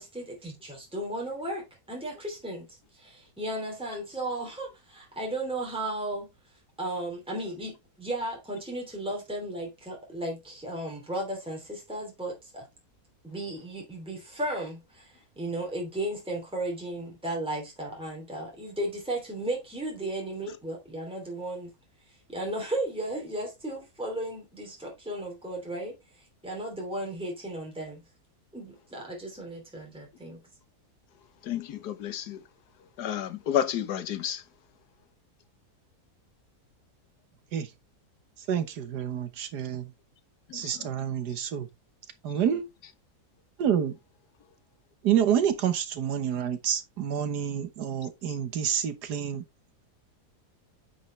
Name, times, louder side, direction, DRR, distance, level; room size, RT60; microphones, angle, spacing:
voice 1, 0.0-2.7 2.9-6.3 6.8-12.6 13.2-21.7 22.3-26.0 26.4-28.0 28.5-30.4, right 1 dB, 5° right, 2.8 m, -35 dB
voice 2, 31.5-32.4 33.0-34.4 40.5-40.7, left 10 dB, 85° left, 1.5 m, -30 dB
voice 3, 38.5-39.9 40.5-41.7 42.2-42.6 43.6-43.9 45.0-49.4, right 9 dB, 85° right, 1.7 m, -28 dB
9.1 x 5.5 x 3.1 m
omnidirectional pair, 1.7 m